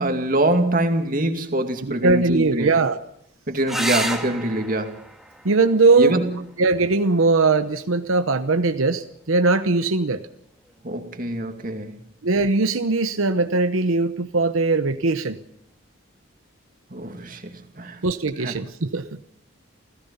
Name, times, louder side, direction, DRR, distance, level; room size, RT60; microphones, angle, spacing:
voice 1, 0.0-2.7 3.5-5.0 6.0-6.3 10.8-12.0 16.9-18.0 18.4-18.5, right 1 dB, 45° right, 2.4 m, -24 dB
voice 2, 1.8-3.0 5.4-6.2 6.6-10.2 12.2-15.4 18.0-19.1, right 3 dB, 90° right, 1.0 m, -20 dB
sound 1, 3.7-8.7 10.6-11.2 14.7-14.8 15.1-15.2, right 1 dB, ahead, 1.8 m, -33 dB
29.0 x 16.5 x 5.6 m
head